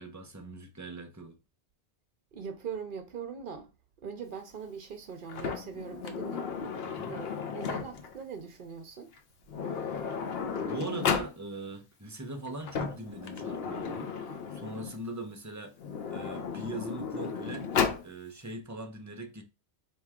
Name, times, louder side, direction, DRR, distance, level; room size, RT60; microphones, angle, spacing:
voice 1, 0.0-1.4 6.8-7.2 9.8-10.0 10.5-15.8 16.1-17.7 18.0-19.4, right 2 dB, 20° right, 0.6 m, -41 dB
voice 2, 2.3-3.7 4.0-6.5 7.1-9.1, right 6 dB, 55° right, 0.7 m, -41 dB
Sliding door, 5.3-8.2 9.1-9.2 9.5-11.4 12.5-15.0 15.8-18.1, left 6 dB, 65° left, 0.8 m, -34 dB
4.5 x 2.9 x 3.5 m
omnidirectional pair, 1.2 m